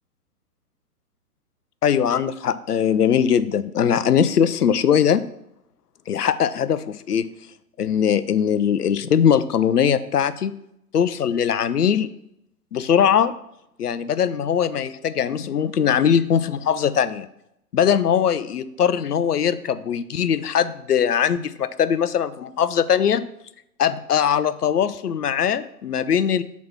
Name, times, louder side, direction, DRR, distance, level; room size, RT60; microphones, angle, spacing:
voice 1, 1.8-5.2 6.1-7.3 7.8-10.5 10.9-12.1 12.7-13.3 13.8-17.3 17.7-23.2 23.8-26.4, left 8 dB, 80° left, 14 dB, 0.6 m, -21 dB
6.2 x 4.2 x 5.5 m, 0.80 s
figure-of-eight pair, 120°, 46 cm